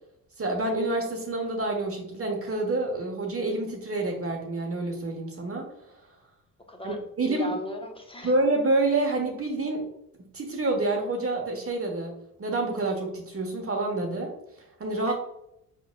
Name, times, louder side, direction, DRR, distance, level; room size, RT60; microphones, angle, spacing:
voice 1, 0.4-5.7 6.8-7.5 8.2-9.9 10.3-12.1 12.4-14.3 14.8-15.1, right 2 dB, 30° right, 2 dB, 1.2 m, -28 dB
voice 2, 6.7-7.0 7.3-8.3 15.1-15.2, equal, 10° left, 3 dB, 1.0 m, -36 dB
4.5 x 4.5 x 2.3 m, 0.81 s
hypercardioid pair, 50°, 46 cm